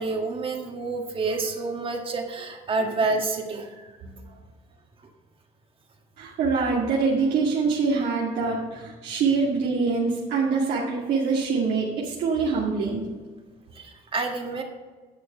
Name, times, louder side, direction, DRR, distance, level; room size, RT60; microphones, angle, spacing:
voice 1, 0.0-3.9 13.7-14.6, right 3 dB, 30° right, 3 dB, 1.7 m, -28 dB
voice 2, 4.0-4.3 6.2-13.1, right 4 dB, 75° right, -5 dB, 2.2 m, -25 dB
11.0 x 6.7 x 6.8 m, 1.4 s
cardioid pair, 110°, 17 cm